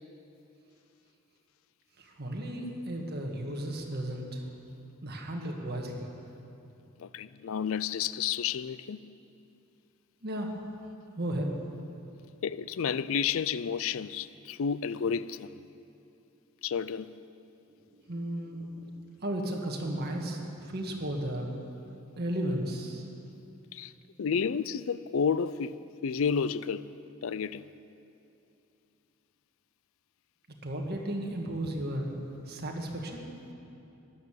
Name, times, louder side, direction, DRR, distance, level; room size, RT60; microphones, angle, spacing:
voice 1, 2.0-4.4 5.0-6.1 10.2-10.5 11.2-11.6 18.1-18.7 19.2-21.5 22.2-23.1 30.6-32.1 32.5-33.3, right 1 dB, 45° right, 1.7 m, -34 dB
voice 2, 7.0-9.0 12.4-15.6 16.6-17.1 23.7-23.9 24.2-26.9 27.2-27.6, left 6 dB, 65° left, 0.4 m, -31 dB
15.0 x 11.5 x 7.5 m
head